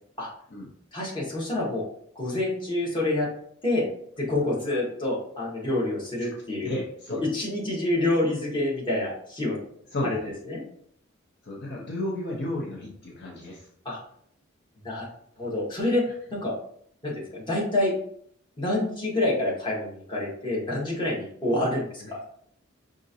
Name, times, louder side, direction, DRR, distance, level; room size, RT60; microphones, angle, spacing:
voice 1, 0.9-1.9 2.1-3.3 3.6-3.9 4.2-6.7 7.2-9.6 10.0-10.2 10.5-10.6 13.8-14.0 14.8-15.1 15.4-16.0 16.3-16.5 17.0-17.9 18.6-22.2, left 2 dB, 25° left, -6 dB, 1.2 m, -27 dB
voice 2, 6.6-7.3 9.9-10.3 11.4-13.7 22.0-22.1, left 1 dB, 55° left, -2 dB, 0.7 m, -33 dB
5.0 x 2.5 x 2.7 m, 0.64 s
head